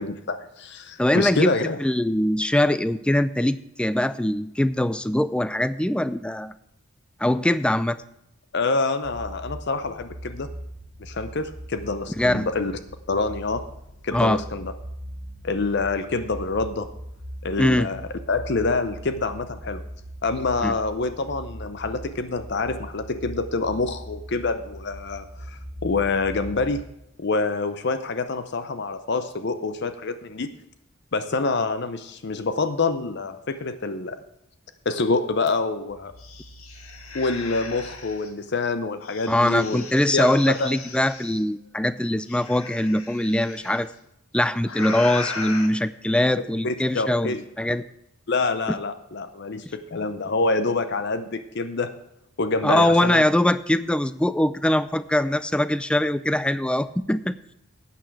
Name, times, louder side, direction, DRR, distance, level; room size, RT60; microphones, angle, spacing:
voice 1, 0.0-1.8 8.5-10.5 11.0-12.7 13.1-13.6 14.0-14.7 15.4-16.9 17.4-18.0 18.3-19.8 20.2-26.8 27.2-30.5 31.1-34.2 34.9-36.1 37.1-39.8 40.1-40.7 46.6-47.4 48.3-51.9 52.4-53.2, left 3 dB, 50° left, 10 dB, 0.6 m, -26 dB
voice 2, 1.0-1.5 1.8-6.5 7.2-8.0 12.2-12.5 14.1-14.4 17.6-17.9 20.6-20.7 39.3-43.9 44.3-47.8 52.6-57.3, left 1 dB, 5° left, 15 dB, 0.3 m, -22 dB
sound 1, 9.0-26.8, equal, 40° right, 2.5 m, -40 dB
sound 2, 35.5-35.6 35.9-38.3 39.0-41.4 42.3-43.8 44.6-45.7, left 4 dB, 85° left, 1.8 m, -37 dB
12.0 x 8.5 x 4.7 m, 0.83 s
head